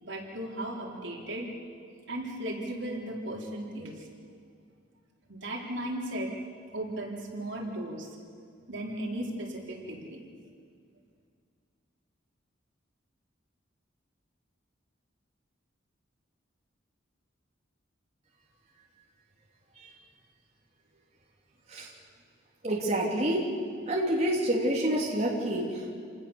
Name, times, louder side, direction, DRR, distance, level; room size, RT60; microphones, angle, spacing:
voice 1, 0.0-1.5 2.1-4.1 5.3-6.3 6.7-8.2 8.7-10.3, right 1 dB, 70° right, -1 dB, 4.1 m, -36 dB
voice 2, 22.6-23.5 23.9-25.9, right 1 dB, 35° right, -3 dB, 3.4 m, -28 dB
28.0 x 19.5 x 7.3 m, 2.2 s
head